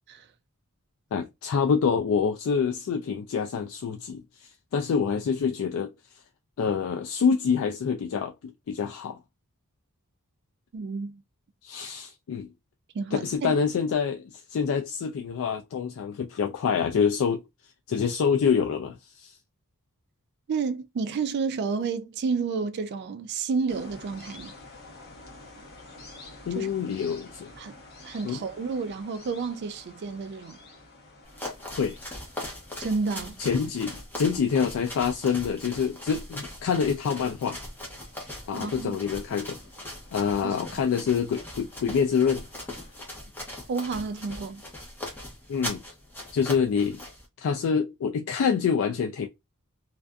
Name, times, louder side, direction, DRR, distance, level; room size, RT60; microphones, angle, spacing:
voice 1, 1.1-5.9 6.6-9.2 11.6-12.5 13.1-17.4 17.9-19.4 26.5-27.5 28.2-28.4 31.8-32.0 33.4-37.6 38.5-39.6 40.1-42.4 45.5-45.8 46.3-47.0 47.4-49.3, left 6 dB, 65° left, 0.3 m, -26 dB
voice 2, 10.7-11.2 12.9-13.6 20.5-24.6 26.5-26.7 27.6-27.7 28.0-30.6 32.8-33.4 38.5-38.9 40.4-40.8 43.7-44.6, right 5 dB, 50° right, 0.3 m, -31 dB
sound 1, 23.7-43.2, left 2 dB, 45° left, 0.9 m, -51 dB
sound 2, 31.2-47.2, left 1 dB, 10° left, 0.9 m, -40 dB
2.5 x 2.4 x 2.2 m
head